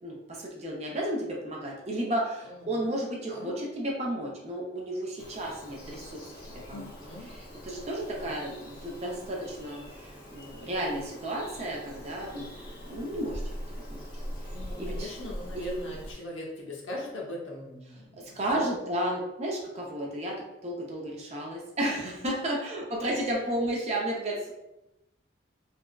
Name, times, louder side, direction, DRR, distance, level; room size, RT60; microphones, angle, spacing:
voice 1, 0.0-6.9 7.6-12.5 12.9-13.4 13.9-14.0 14.8-15.1 15.5-15.7 18.2-20.3 20.6-24.5, right 1 dB, 35° right, -2 dB, 0.5 m, -33 dB
voice 2, 2.4-2.9 3.3-3.6 6.7-7.3 14.5-18.7, left 1 dB, 90° left, -2 dB, 0.7 m, -40 dB
Bird vocalization bird call bird song, 5.2-16.1, equal, 50° left, 1.1 m, -42 dB
3.4 x 2.0 x 2.3 m, 0.92 s
head